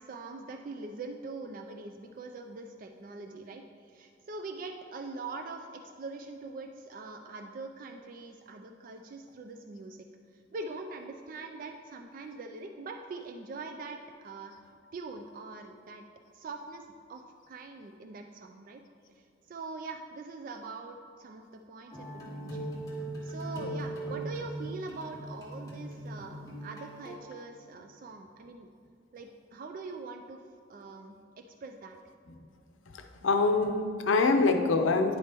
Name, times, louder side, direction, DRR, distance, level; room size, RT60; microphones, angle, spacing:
voice 1, 0.0-10.1 10.5-14.5 14.9-16.0 16.3-18.8 19.2-22.7 23.2-28.7 29.1-30.4 30.7-32.0, right 3 dB, 45° right, 5 dB, 0.3 m, -43 dB
sound 1, 21.9-27.2, right 1 dB, 20° left, 1.4 m, -39 dB
voice 2, 32.9-35.2, left 3 dB, 85° left, 6 dB, 0.6 m, -25 dB
9.9 x 3.4 x 4.4 m, 2.3 s
head